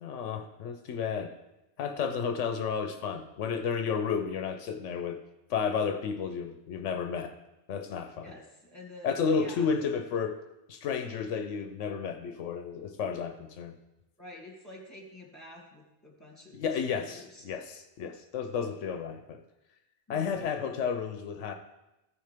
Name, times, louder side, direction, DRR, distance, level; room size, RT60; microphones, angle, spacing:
voice 1, 0.0-1.3 1.8-5.2 5.5-7.3 7.7-8.3 9.0-10.4 10.7-13.7 16.5-19.4 20.1-21.5, left 6 dB, 85° left, 6 dB, 1.0 m, -32 dB
voice 2, 8.2-9.9 14.2-17.4, left 2 dB, 15° left, -2 dB, 2.1 m, -49 dB
14.5 x 6.5 x 3.4 m, 0.98 s
omnidirectional pair, 1.2 m